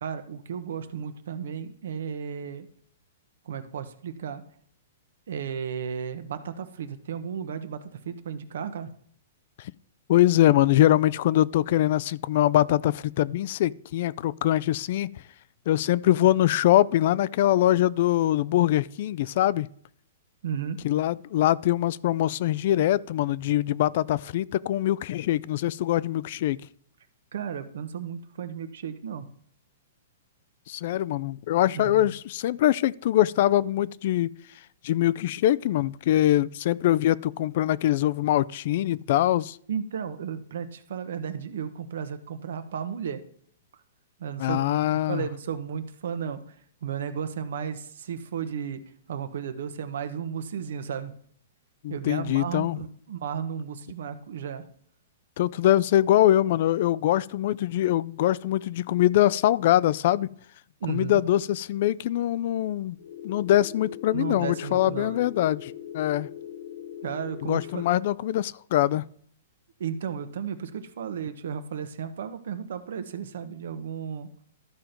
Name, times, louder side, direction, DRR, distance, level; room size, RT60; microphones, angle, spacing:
voice 1, 0.0-2.7 3.4-4.4 5.3-8.9 20.4-20.8 27.3-29.3 31.7-32.1 39.7-43.2 44.2-46.6 46.8-48.8 49.1-51.1 51.9-54.6 60.8-61.2 64.1-65.2 67.0-67.9 69.8-74.3, right 7 dB, 75° right, 1.1 m, -34 dB
voice 2, 10.1-15.2 15.7-19.7 20.8-26.6 30.7-34.3 34.8-39.6 44.4-45.3 51.8-52.8 55.4-60.3 60.9-63.0 63.2-66.3 67.5-69.1, left 13 dB, 55° left, 0.3 m, -23 dB
sound 1, 63.0-67.9, left 10 dB, 80° left, 1.3 m, -40 dB
12.5 x 4.5 x 5.2 m
hypercardioid pair, 145°, 0 cm